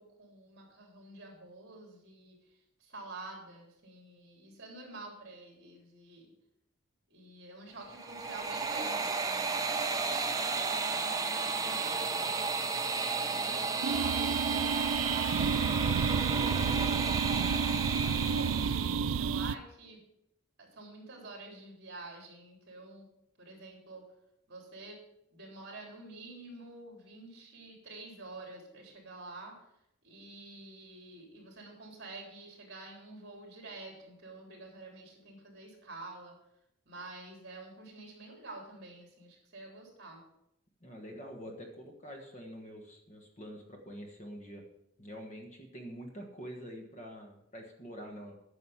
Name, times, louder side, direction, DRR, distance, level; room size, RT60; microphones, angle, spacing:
voice 1, 0.0-6.3 7.1-15.6 18.0-20.0 20.6-23.1 23.4-24.1 24.5-25.0 25.3-29.6 30.0-36.4 36.9-40.2, right 2 dB, 55° right, 0 dB, 3.5 m, -48 dB
sound 1, 7.9-19.0, right 4 dB, 15° right, 0.6 m, -33 dB
sound 2, 13.8-19.6, right 6 dB, 75° right, 0.4 m, -30 dB
voice 2, 40.8-44.6 45.0-48.3, equal, 35° left, 2 dB, 1.4 m, -46 dB
9.8 x 6.5 x 5.8 m, 0.79 s
head